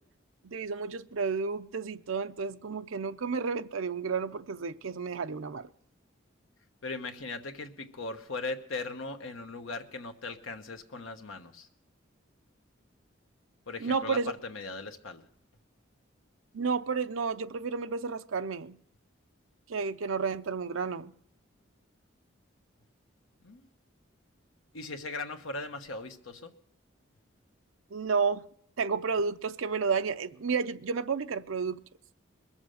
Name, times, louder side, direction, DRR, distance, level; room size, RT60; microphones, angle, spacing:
voice 1, 0.4-5.7 13.8-14.3 16.5-18.8 19.7-21.1 27.9-28.4 28.8-31.8, right 5 dB, 85° right, 0.6 m, -31 dB
voice 2, 6.8-11.7 13.7-15.2 23.4-23.7 24.7-26.5, left 3 dB, 85° left, 1.2 m, -39 dB
21.5 x 7.3 x 6.4 m
head